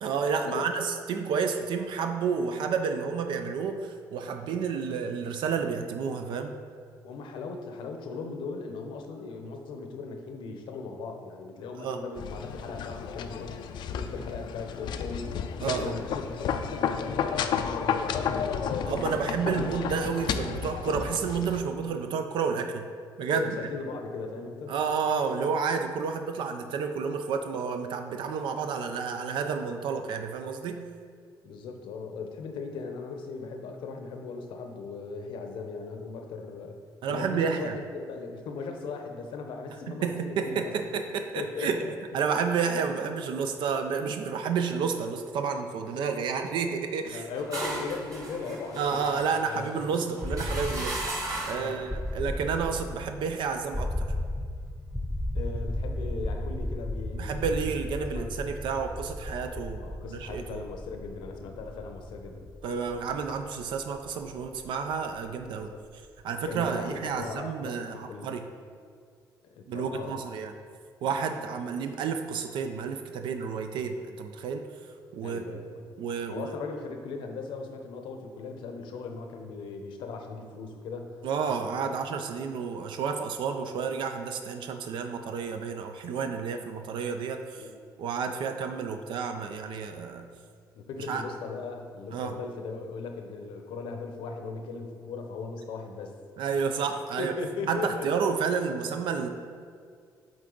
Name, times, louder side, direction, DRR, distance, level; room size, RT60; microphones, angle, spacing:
voice 1, 0.0-6.5 11.8-12.0 15.6-15.9 18.9-22.9 23.2-23.6 24.7-30.8 37.0-37.7 39.9-41.8 42.1-47.2 48.8-51.0 51.5-54.1 57.1-60.6 62.6-65.7 66.2-68.5 69.7-70.5 71.0-74.7 75.1-75.6 76.0-76.5 81.2-87.6 88.0-90.3 91.1-91.2 92.1-92.3 96.4-97.3 97.7-99.3, right 6 dB, 75° right, 6 dB, 0.4 m, -30 dB
voice 2, 7.0-13.6 13.9-15.4 15.6-19.7 23.4-24.8 31.4-36.8 37.1-40.7 41.4-41.9 47.1-50.0 51.5-51.8 55.3-57.5 58.1-58.4 59.8-62.5 65.5-65.8 66.5-68.3 69.6-70.1 71.0-71.2 75.2-75.7 76.3-81.2 81.7-82.0 87.6-87.7 88.8-88.9 90.7-96.1 97.2-98.1, left 4 dB, 85° left, 4 dB, 0.7 m, -38 dB
sound 1, 12.2-21.6, left 7 dB, 70° left, 0.4 m, -32 dB
sound 2, 47.1-51.8, right 1 dB, 45° right, 1.6 m, -36 dB
sound 3, 50.2-66.1, left 1 dB, ahead, 0.5 m, -35 dB
7.9 x 3.7 x 3.8 m, 2.1 s
cardioid pair, 120°, 8 cm